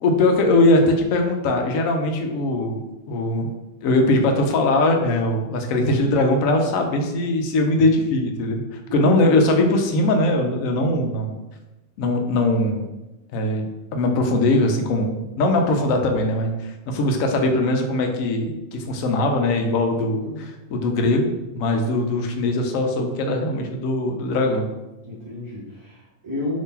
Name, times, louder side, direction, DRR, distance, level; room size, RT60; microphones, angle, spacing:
voice 1, 0.0-2.8 3.1-3.5 3.8-11.4 12.0-12.8 13.3-24.7, left 2 dB, 80° left, 4 dB, 1.0 m, -21 dB
voice 2, 5.7-6.1 8.9-9.4 10.7-11.0 19.9-20.4 25.0-26.6, left 1 dB, 25° right, -10 dB, 0.7 m, -32 dB
2.8 x 2.8 x 3.6 m, 1.0 s
omnidirectional pair, 1.4 m